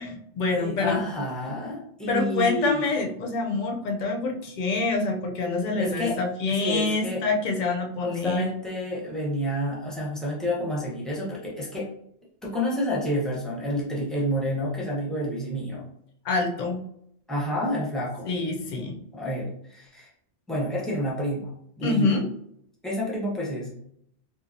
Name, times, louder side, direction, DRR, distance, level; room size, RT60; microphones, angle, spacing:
voice 1, 0.0-1.0 2.1-8.5 16.2-16.8 18.3-19.0 21.8-22.2, left 3 dB, 55° left, 2 dB, 0.6 m, -26 dB
voice 2, 0.6-2.9 5.8-6.2 6.6-7.2 8.0-11.9 12.4-15.8 17.3-18.3 19.1-20.1 20.5-21.5 21.8-22.1 22.8-23.7, equal, ahead, -5 dB, 0.6 m, -29 dB
3.0 x 2.4 x 2.6 m, 0.71 s
omnidirectional pair, 1.2 m